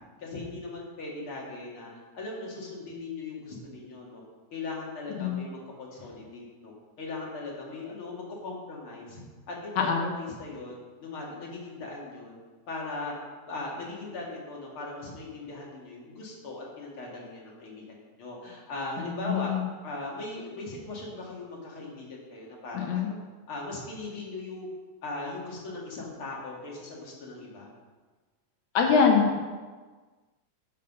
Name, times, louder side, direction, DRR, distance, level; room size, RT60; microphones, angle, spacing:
voice 1, 0.2-4.2 4.5-9.2 9.5-12.4 12.7-13.1 13.5-19.5 19.8-23.2 23.5-24.7 25.0-27.7, left 2 dB, 45° left, -3 dB, 2.6 m, -39 dB
voice 2, 9.8-10.1 19.0-19.7 22.7-23.1 28.7-29.4, left 6 dB, 75° left, 2 dB, 2.2 m, -24 dB
11.0 x 5.6 x 5.4 m, 1.4 s
omnidirectional pair, 3.5 m